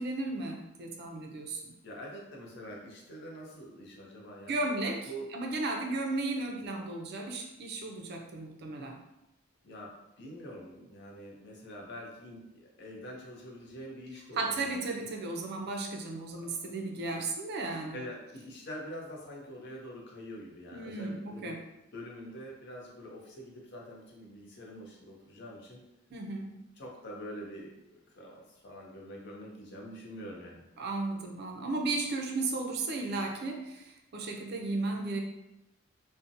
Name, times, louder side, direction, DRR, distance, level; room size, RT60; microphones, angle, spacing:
voice 1, 0.0-1.7 4.5-9.0 14.3-18.0 20.7-21.6 26.1-26.5 30.8-35.2, right 2 dB, 55° right, 2 dB, 0.4 m, -35 dB
voice 2, 1.8-4.6 5.1-5.3 9.6-15.1 16.4-16.6 17.1-17.2 17.9-21.6 21.9-25.8 26.8-30.6, equal, 60° left, -1 dB, 0.6 m, -45 dB
2.6 x 2.0 x 2.5 m, 0.91 s
head